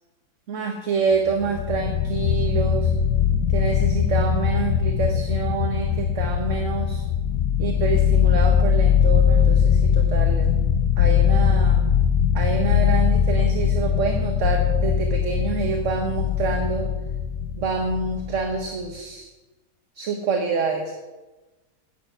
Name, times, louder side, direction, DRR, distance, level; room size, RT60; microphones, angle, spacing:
voice 1, 0.5-2.9 3.5-7.0 7.6-10.5 11.0-11.8 12.3-16.9 17.6-19.3 19.9-20.9, right 5 dB, 55° right, 3 dB, 1.2 m, -27 dB
sound 1, 1.3-18.6, left 8 dB, 70° left, 1.2 m, -21 dB
10.5 x 8.5 x 5.4 m, 1.2 s
omnidirectional pair, 1.7 m